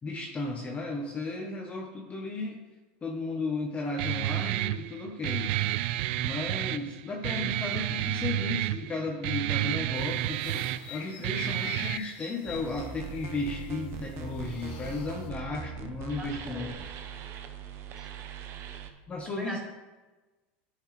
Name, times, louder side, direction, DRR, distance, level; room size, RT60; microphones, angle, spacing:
voice 1, 0.0-2.6 3.0-5.5 6.2-16.7 19.1-19.6, left 3 dB, 20° left, 1 dB, 1.0 m, -34 dB
Guitar, 4.0-12.0, right 14 dB, 70° right, 0.3 m, -30 dB
sound 1, 9.9-15.3, left 7 dB, 70° left, 1.2 m, -45 dB
sound 2, 12.5-18.9, right 7 dB, 45° right, 0.9 m, -41 dB
voice 2, 16.2-16.7 18.0-18.1 19.4-19.6, right 1 dB, 10° right, -1 dB, 1.9 m, -41 dB
10.0 x 5.8 x 3.3 m, 1.2 s
supercardioid pair, 120°, 6 cm